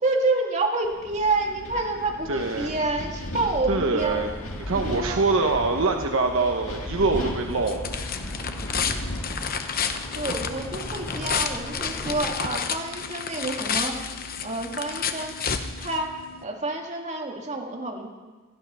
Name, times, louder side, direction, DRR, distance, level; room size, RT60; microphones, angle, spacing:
voice 1, 0.0-4.3 4.7-5.2 10.1-14.0 14.4-15.4 15.8-18.1, right 2 dB, 35° right, 1 dB, 2.0 m, -28 dB
Wind, 0.8-12.3, left 1 dB, 80° left, 1.9 m, -37 dB
voice 2, 2.3-2.7 3.7-4.3 4.7-7.8, right 3 dB, 70° right, 4 dB, 1.1 m, -24 dB
sound 1, 4.0-12.4, left 1 dB, 10° left, 0.4 m, -39 dB
sound 2, 7.0-16.4, left 6 dB, 45° left, 0.9 m, -31 dB
16.5 x 13.0 x 5.6 m, 1.3 s
head